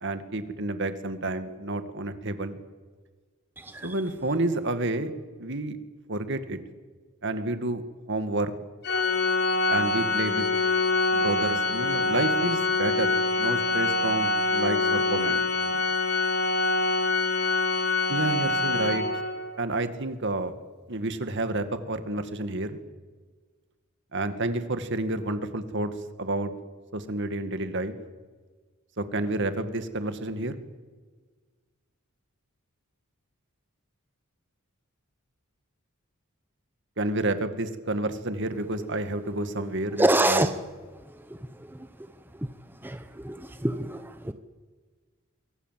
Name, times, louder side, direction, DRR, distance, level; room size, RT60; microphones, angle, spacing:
voice 1, 0.0-2.6 3.8-5.1 5.4-5.8 6.1-6.6 7.2-7.8 8.1-8.5 9.7-10.5 11.1-15.4 15.7-15.8 18.1-19.1 19.6-20.5 20.9-22.8 24.1-25.9 26.2-26.5 26.9-28.0 29.0-30.5 37.0-40.5, right 2 dB, 55° right, 9 dB, 2.2 m, -29 dB
Organ, 8.8-19.6, left 3 dB, 50° left, 2.3 m, -25 dB
voice 2, 40.0-40.5 42.8-43.0 43.2-43.4 43.6-44.0, right 1 dB, 10° right, 9 dB, 0.9 m, -22 dB
27.5 x 24.0 x 7.7 m, 1.4 s
head